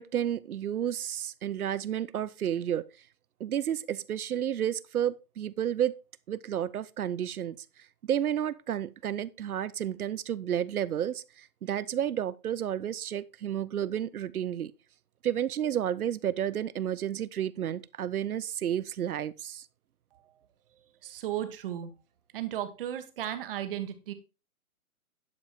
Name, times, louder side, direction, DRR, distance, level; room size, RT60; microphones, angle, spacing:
voice 1, 0.0-2.9 3.4-6.0 6.3-7.6 8.0-14.7 15.2-19.7, right 10 dB, 80° right, 0.7 m, -31 dB
voice 2, 20.7-21.9 22.3-24.1, right 11 dB, 40° right, 1.4 m, -35 dB
11.0 x 5.2 x 4.3 m
hypercardioid pair, 145°, 44 cm